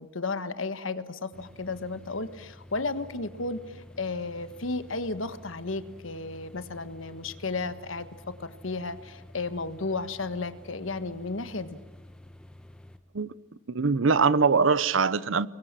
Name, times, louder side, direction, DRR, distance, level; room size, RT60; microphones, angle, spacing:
voice 1, 0.0-11.8, left 3 dB, 90° left, 1.5 m, -33 dB
sound 1, 1.3-13.0, left 1 dB, 5° left, 1.3 m, -50 dB
voice 2, 13.7-15.5, right 5 dB, 80° right, 0.8 m, -22 dB
30.0 x 22.5 x 7.5 m
head